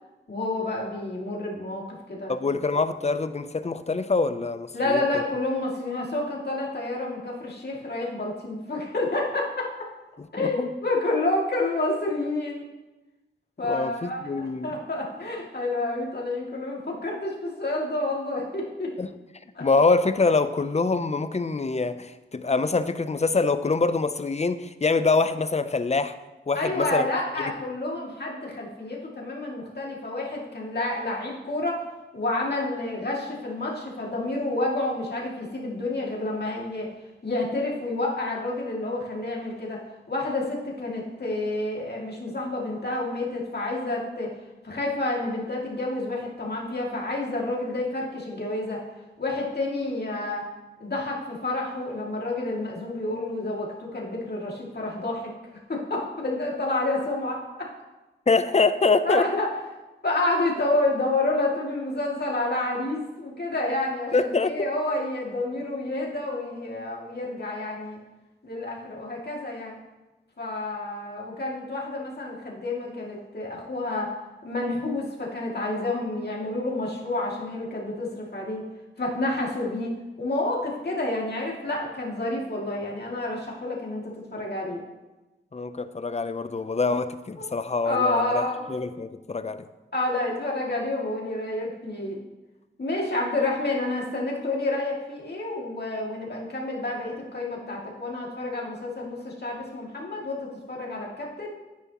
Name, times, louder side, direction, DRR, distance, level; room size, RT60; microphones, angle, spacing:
voice 1, 0.3-2.6 4.7-9.5 10.3-12.6 13.6-18.9 19.5-19.7 26.5-31.8 32.1-36.9 37.2-39.8 40.1-44.3 44.6-48.8 49.2-50.4 50.8-55.3 55.7-57.7 59.0-59.5 60.0-68.0 68.4-69.8 70.4-74.1 74.4-78.6 79.0-84.8 87.4-87.5 87.8-88.6 89.9-92.2 92.8-101.6, left 2 dB, 55° left, -3 dB, 2.5 m, -29 dB
voice 2, 2.3-5.0 10.2-10.7 13.6-14.8 19.0-19.1 19.6-26.1 26.5-27.1 58.3-59.2 64.1-64.7 85.5-88.4 88.7-89.6, left 4 dB, 35° left, 11 dB, 0.6 m, -25 dB
9.7 x 9.5 x 3.0 m, 1.1 s
cardioid pair, 45°, 21 cm